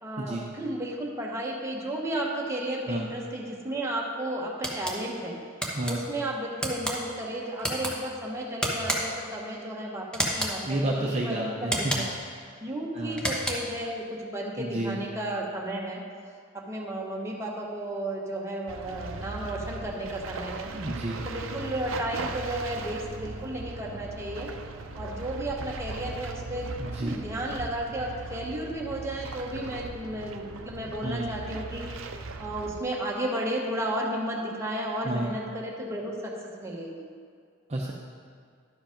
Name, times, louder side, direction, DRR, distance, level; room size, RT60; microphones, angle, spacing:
voice 1, 0.0-5.4 5.9-12.1 12.6-16.0 16.5-20.7 21.2-24.5 25.0-26.7 27.0-31.8 32.4-36.3 36.6-37.0, right 1 dB, 15° right, -3 dB, 1.2 m, -33 dB
sound 1, 4.6-5.0 5.6-5.9 6.6-7.0 7.6-7.9 8.6-9.2 10.1-10.6 11.6-12.2 13.1-13.8, equal, 5° left, 1.0 m, -30 dB
voice 2, 10.6-11.7 12.9-13.2 14.6-15.0 20.7-21.2 27.0-27.1 31.0-31.3 35.1-35.3 37.7-37.9, right 1 dB, 35° right, -3 dB, 0.7 m, -30 dB
sound 2, 18.7-32.8, right 3 dB, 75° right, 0.6 m, -38 dB
11.5 x 5.1 x 5.2 m, 2.2 s
head